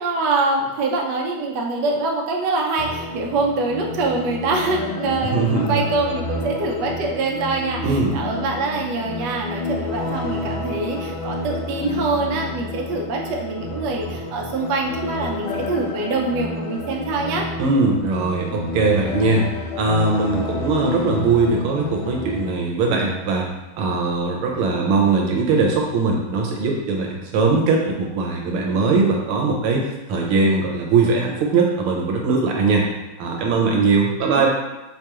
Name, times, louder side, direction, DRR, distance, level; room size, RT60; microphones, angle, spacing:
voice 1, 0.0-17.4 34.2-34.4, right 3 dB, 70° right, 0 dB, 1.0 m, -24 dB
sound 1, 2.8-22.5, left 2 dB, 75° left, 1.3 m, -30 dB
voice 2, 5.2-5.8 7.8-8.1 15.5-15.6 17.6-19.5 19.8-23.5 23.8-32.9 33.2-34.5, right 3 dB, 90° right, 0 dB, 1.6 m, -20 dB
4.7 x 2.9 x 2.3 m, 1.0 s
omnidirectional pair, 2.3 m